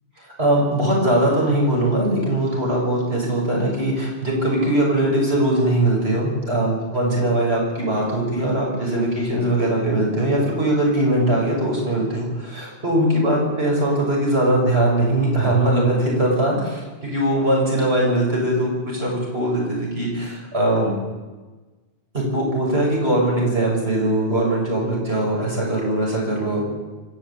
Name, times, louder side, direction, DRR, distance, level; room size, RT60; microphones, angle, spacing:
voice 1, 0.4-20.9 22.1-26.6, right 1 dB, 80° right, -2 dB, 6.6 m, -21 dB
27.0 x 14.0 x 8.5 m, 1.2 s
omnidirectional pair, 1.1 m